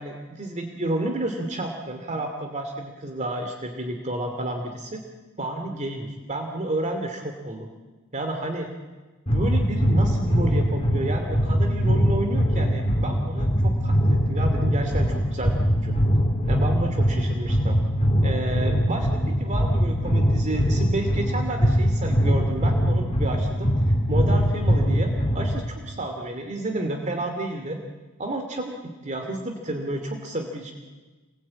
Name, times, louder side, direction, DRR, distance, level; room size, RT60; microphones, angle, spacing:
voice 1, 0.0-5.0 5.4-7.7 8.1-8.7 9.3-16.0 16.5-17.8 18.2-19.1 19.4-27.8 28.2-30.7, right 1 dB, 35° right, 4 dB, 2.4 m, -31 dB
sound 1, 9.3-25.7, equal, 30° left, 3.2 m, -22 dB
27.0 x 20.5 x 8.7 m, 1.3 s
head